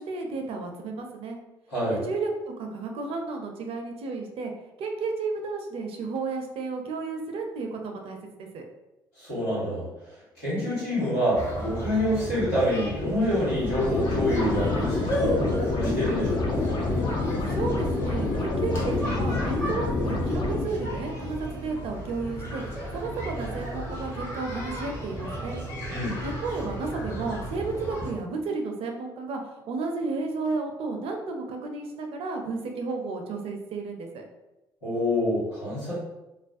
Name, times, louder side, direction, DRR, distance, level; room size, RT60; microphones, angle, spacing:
voice 1, 0.0-1.4 1.9-4.5 4.8-8.6 17.5-25.6 26.2-29.4 29.7-34.2, right 3 dB, 55° right, 3 dB, 0.4 m, -32 dB
voice 2, 1.7-2.0 9.2-9.9 10.4-16.6 25.9-26.2 34.8-35.9, left 1 dB, 80° left, -10 dB, 1.4 m, -27 dB
sound 1, 11.4-28.1, equal, 25° left, 1.0 m, -34 dB
sound 2, 13.4-20.6, left 3 dB, 40° left, 0.5 m, -28 dB
2.4 x 2.1 x 2.4 m, 0.97 s
hypercardioid pair, 50°, 12 cm